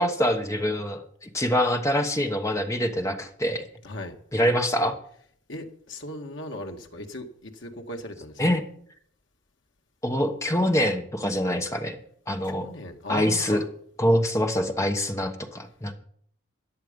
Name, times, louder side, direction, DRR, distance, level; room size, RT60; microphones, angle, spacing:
voice 1, 0.0-3.6 4.3-4.9 8.4-8.6 10.0-12.0 12.3-12.7 13.1-13.6 14.0-15.9, equal, 15° left, 5 dB, 1.1 m, -25 dB
voice 2, 3.8-4.2 5.5-8.4 12.4-13.6, left 1 dB, 75° left, 3 dB, 1.8 m, -37 dB
14.0 x 10.0 x 5.3 m, 0.63 s
head